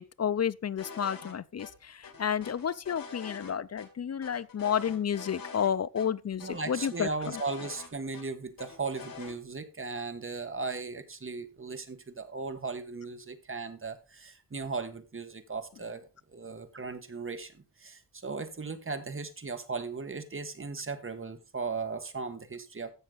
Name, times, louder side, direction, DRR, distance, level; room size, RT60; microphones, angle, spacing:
voice 1, 0.0-7.1, left 8 dB, 50° left, 0.5 m, -31 dB
sound 1, 0.8-1.3 1.6-1.7 2.0-3.5 3.8-3.9 4.2-5.7 6.0-6.1 6.4-8.2 8.6-9.3, left 6 dB, 75° left, 2.5 m, -45 dB
voice 2, 6.4-22.9, right 4 dB, 40° right, 1.4 m, -37 dB
15.0 x 6.5 x 3.9 m
wide cardioid pair, 105°, 34 cm